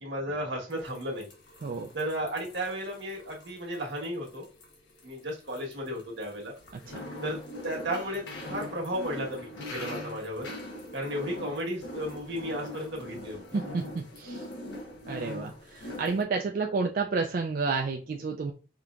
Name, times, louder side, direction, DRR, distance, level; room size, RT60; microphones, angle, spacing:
voice 1, 0.0-1.3 1.9-4.5 5.0-6.5 7.2-7.4 7.6-10.5 10.9-13.4, equal, 80° right, 0 dB, 1.3 m, -34 dB
sound 1, 0.7-16.2, left 1 dB, 85° left, 1.1 m, -42 dB
voice 2, 6.7-7.0 13.5-14.5 15.1-18.5, right 4 dB, 50° right, 2 dB, 0.3 m, -31 dB
5.0 x 2.8 x 2.4 m, 0.35 s
head